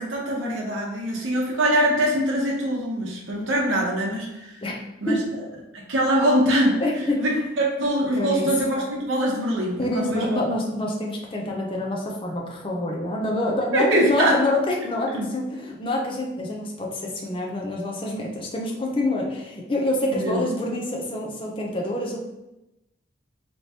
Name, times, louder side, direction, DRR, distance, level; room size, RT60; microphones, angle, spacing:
voice 1, 0.0-4.6 5.0-5.2 5.7-6.8 7.2-10.4 13.7-14.4 15.1-15.3 20.1-20.5, right 1 dB, 85° right, -2 dB, 0.8 m, -23 dB
voice 2, 6.8-7.2 8.2-8.5 9.8-22.2, left 1 dB, 25° left, -1 dB, 0.6 m, -26 dB
3.5 x 2.9 x 2.8 m, 0.94 s
head